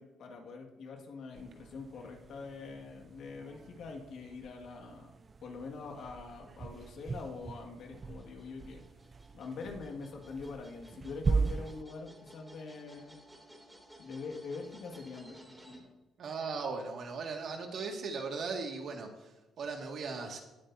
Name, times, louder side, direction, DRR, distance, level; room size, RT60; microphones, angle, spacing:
voice 1, 0.0-5.1 5.4-8.8 9.3-13.2 14.0-15.9, left 4 dB, 70° left, 2 dB, 2.0 m, -44 dB
sound 1, 1.3-11.8, right 4 dB, 35° right, 0.3 m, -39 dB
sound 2, 6.7-15.8, right 1 dB, 10° right, 2.9 m, -57 dB
voice 2, 16.2-20.4, right 4 dB, 65° right, 2 dB, 2.1 m, -38 dB
18.5 x 8.7 x 2.8 m, 1.1 s
cardioid pair, 90°, 0 cm